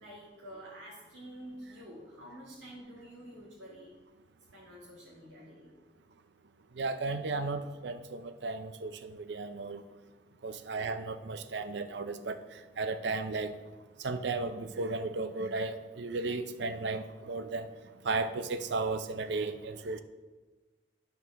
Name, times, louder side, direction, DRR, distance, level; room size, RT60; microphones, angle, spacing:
voice 1, 0.0-3.9 4.5-5.7, equal, 90° right, -7 dB, 2.2 m, -48 dB
voice 2, 6.8-9.8 10.4-13.6 14.0-17.7 18.0-20.0, right 3 dB, 70° right, 10 dB, 0.5 m, -35 dB
9.1 x 5.4 x 6.1 m, 1.3 s
head